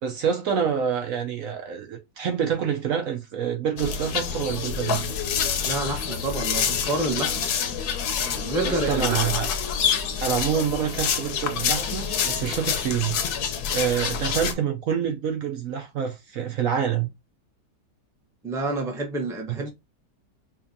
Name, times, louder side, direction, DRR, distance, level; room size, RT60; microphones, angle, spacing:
voice 1, 0.0-5.1 8.6-9.5 10.2-13.4 13.7-17.1, right 8 dB, 65° right, 0.9 m, -27 dB
sound 1, 3.8-14.5, left 7 dB, 70° left, 1.2 m, -27 dB
voice 2, 5.6-7.5 8.2-9.2 18.4-19.7, right 2 dB, 5° right, 0.5 m, -28 dB
5.3 x 2.4 x 2.6 m
omnidirectional pair, 1.8 m